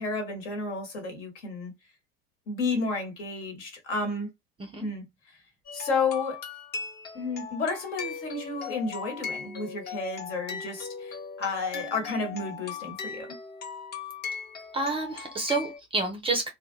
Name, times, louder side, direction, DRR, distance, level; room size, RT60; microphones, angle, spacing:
voice 1, 0.0-1.7 2.5-4.3 4.8-5.1 5.7-6.4 7.1-13.4, left 3 dB, 60° left, 1.2 m, -31 dB
sound 1, 5.7-15.8, left 6 dB, 25° left, 0.7 m, -39 dB
voice 2, 14.7-16.5, right 3 dB, 15° right, 0.5 m, -29 dB
2.2 x 2.1 x 3.0 m
figure-of-eight pair, 75°, 39 cm